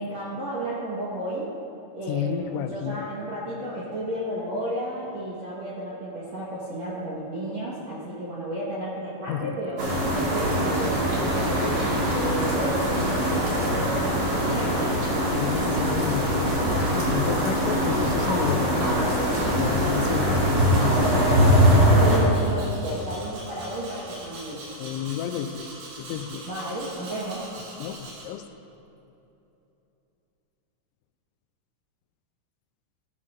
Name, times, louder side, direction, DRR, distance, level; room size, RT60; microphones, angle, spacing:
voice 1, 0.0-1.5 1.9-9.8 10.1-14.8 21.8-24.6 26.5-27.5, right 1 dB, 65° right, -7 dB, 1.7 m, -32 dB
voice 2, 2.1-3.1 9.3-9.6 15.3-21.2 24.8-25.7 26.0-26.5 27.8-28.4, left 9 dB, 85° left, 9 dB, 2.9 m, -31 dB
sound 1, 9.8-22.2, equal, 50° right, 1.6 m, -22 dB
Domestic sounds home sounds, 22.0-28.2, right 2 dB, 90° right, 5.4 m, -42 dB
15.5 x 13.0 x 2.6 m, 2.8 s
omnidirectional pair, 5.3 m